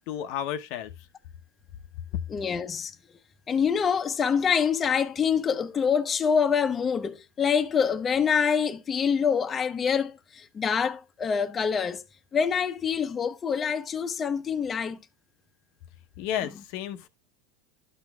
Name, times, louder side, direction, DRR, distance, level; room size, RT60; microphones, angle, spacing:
voice 1, 0.1-0.9 16.2-17.1, left 10 dB, 60° left, 0.8 m, -32 dB
voice 2, 2.3-2.9 3.5-12.0 12.3-15.0, left 6 dB, 25° left, 0.7 m, -26 dB
11.5 x 6.2 x 2.3 m
supercardioid pair, 110°, 0 cm